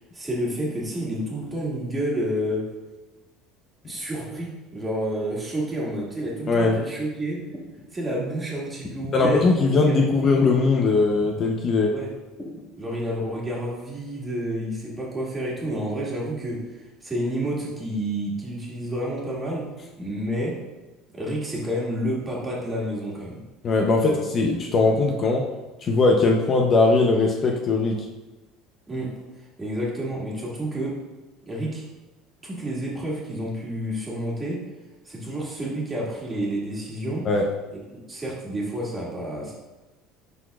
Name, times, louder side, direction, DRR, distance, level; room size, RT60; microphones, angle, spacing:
voice 1, 0.1-2.7 3.8-7.4 7.9-10.3 11.9-12.1 12.8-16.6 17.0-19.7 20.0-20.6 21.1-23.4 24.1-24.2 28.9-29.1 29.6-31.0 31.5-31.8 32.4-34.6 35.0-37.3 37.7-39.5, right 1 dB, 15° right, -4 dB, 1.8 m, -29 dB
sound 1, 7.4-7.9 8.8-9.5 10.6-10.9 12.4-12.7, left 2 dB, 10° left, 1.1 m, -37 dB
voice 2, 9.1-12.0 23.6-25.5 25.8-28.1 37.2-37.5, left 3 dB, 35° left, 1 dB, 0.6 m, -20 dB
11.0 x 3.9 x 2.3 m, 1.1 s
cardioid pair, 140°, 0 cm